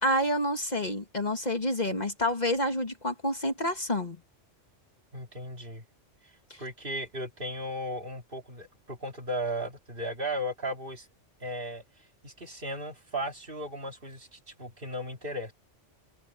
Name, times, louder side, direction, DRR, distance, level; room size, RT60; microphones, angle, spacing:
voice 1, 0.0-4.2 6.5-6.6, left 1 dB, 35° left, 2.0 m, -28 dB
voice 2, 5.1-5.8 6.6-11.1 11.4-11.8 12.2-15.5, equal, 45° right, 3.1 m, -36 dB
omnidirectional pair, 1.3 m